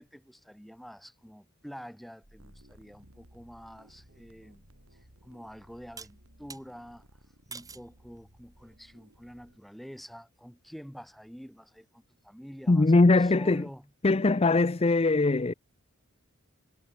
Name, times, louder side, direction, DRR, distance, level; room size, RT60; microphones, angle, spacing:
voice 1, 0.0-4.6 4.9-7.1 7.5-13.9, equal, ahead, 7.0 m, -48 dB
sound 1, 2.2-9.6, equal, 75° right, 6.9 m, -58 dB
sound 2, 6.0-6.6 7.5-7.9 8.5-9.0, right 5 dB, 15° right, 6.6 m, -46 dB
voice 2, 12.7-13.6 14.0-15.5, left 3 dB, 30° left, 0.5 m, -21 dB
head